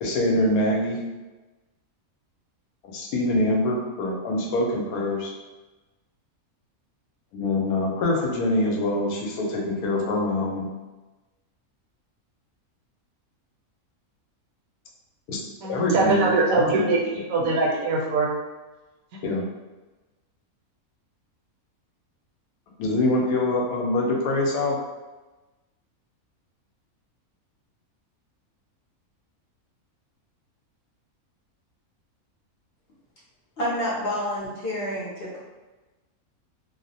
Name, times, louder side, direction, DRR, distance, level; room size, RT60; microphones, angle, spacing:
voice 1, 0.0-1.0 2.9-5.3 7.3-10.7 15.3-15.4 15.7-16.9 19.2-19.4 22.8-24.8, left 1 dB, 80° left, -1 dB, 1.0 m, -24 dB
voice 2, 15.6-18.3, right 3 dB, 75° right, -3 dB, 1.0 m, -22 dB
voice 3, 33.6-35.4, equal, 55° left, -7 dB, 0.7 m, -28 dB
2.4 x 2.0 x 2.6 m, 1.1 s
omnidirectional pair, 1.5 m